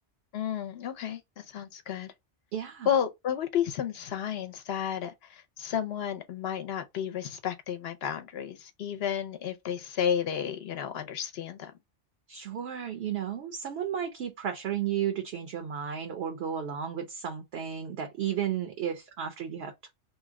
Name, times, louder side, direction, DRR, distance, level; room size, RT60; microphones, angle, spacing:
voice 1, 0.3-2.1 2.9-11.7, left 9 dB, 70° left, 0.8 m, -32 dB
voice 2, 2.5-2.9 12.3-19.9, right 9 dB, 70° right, 0.8 m, -33 dB
2.7 x 2.1 x 3.5 m
omnidirectional pair, 1.1 m